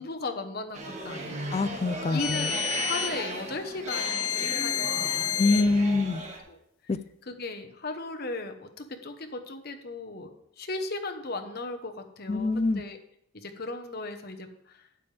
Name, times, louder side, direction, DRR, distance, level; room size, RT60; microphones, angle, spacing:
voice 1, 0.0-1.6 2.1-5.5 6.5-6.6 7.2-10.3 10.6-13.0 13.3-14.8, left 3 dB, 45° left, 5 dB, 1.0 m, -37 dB
sound 1, 0.7-6.4, right 2 dB, 35° right, 1.5 m, -36 dB
voice 2, 1.5-2.5 5.4-6.2 6.9-7.0 12.3-12.8, left 3 dB, 30° left, 14 dB, 0.3 m, -25 dB
sound 2, 2.2-3.2 3.9-5.7, left 10 dB, 80° left, 0.6 m, -30 dB
12.0 x 8.5 x 3.4 m, 0.76 s
head